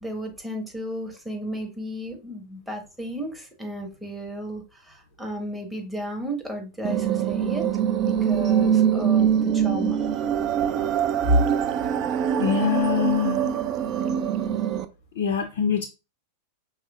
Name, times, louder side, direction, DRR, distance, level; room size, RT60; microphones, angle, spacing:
voice 1, 0.0-7.7 8.0-10.3 11.2-11.4, equal, 5° right, 1.1 m, -31 dB
sound 1, 6.8-14.8, right 9 dB, 35° right, 0.4 m, -23 dB
voice 2, 12.4-13.5 15.2-15.9, left 7 dB, 55° left, 0.4 m, -24 dB
5.4 x 3.3 x 2.3 m
figure-of-eight pair, 90°, 0 cm